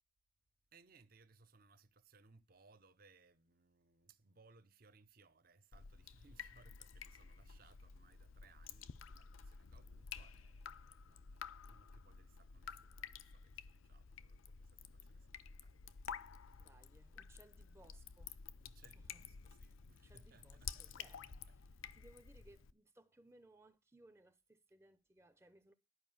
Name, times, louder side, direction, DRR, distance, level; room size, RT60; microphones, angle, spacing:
voice 1, 0.7-16.6 18.6-20.9, right 4 dB, 45° right, 0.8 m, -68 dB
Drip, 5.7-22.7, left 7 dB, 85° left, 0.6 m, -52 dB
voice 2, 16.6-18.3 18.9-19.3 20.0-25.7, right 1 dB, 15° right, 0.6 m, -65 dB
11.0 x 5.4 x 7.1 m
head